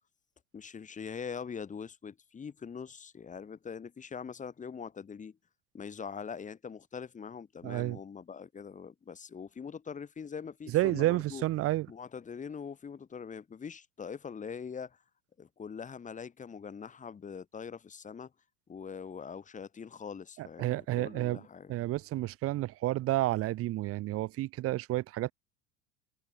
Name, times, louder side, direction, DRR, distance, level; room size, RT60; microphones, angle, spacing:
voice 1, 0.5-5.3 5.7-11.4 11.9-15.0 15.4-18.3 18.7-21.7, left 6 dB, 20° left, 3.4 m, -43 dB
voice 2, 7.6-8.0 10.7-11.9 20.4-21.4 21.7-25.3, right 16 dB, 45° right, 1.9 m, -30 dB
figure-of-eight pair, 75°, 33 cm